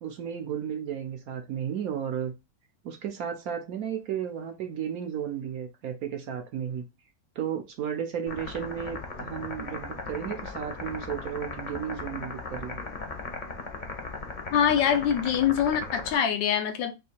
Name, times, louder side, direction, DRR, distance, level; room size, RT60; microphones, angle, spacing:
voice 1, 0.0-2.3 2.8-6.8 7.4-12.8, right 8 dB, 65° right, 1.0 m, -33 dB
sound 1, 8.3-16.1, left 3 dB, 40° left, 0.7 m, -37 dB
voice 2, 14.5-17.0, left 9 dB, 90° left, 1.4 m, -24 dB
3.4 x 2.8 x 4.2 m
omnidirectional pair, 1.9 m